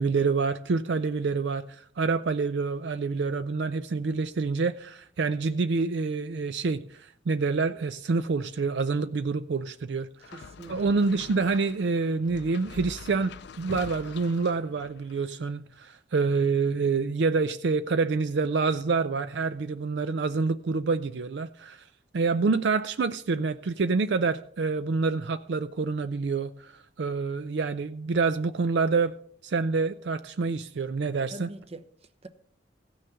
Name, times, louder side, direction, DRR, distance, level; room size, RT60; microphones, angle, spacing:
voice 1, 0.0-10.1 10.7-13.3 13.6-21.8 22.1-29.2 29.4-31.5, right 4 dB, 65° right, 0.4 m, -27 dB
sound 1, 10.2-15.3, left 5 dB, 65° left, 0.5 m, -44 dB
voice 2, 10.3-11.3 31.3-32.3, right 1 dB, 35° right, 0.8 m, -45 dB
16.0 x 6.4 x 5.7 m
head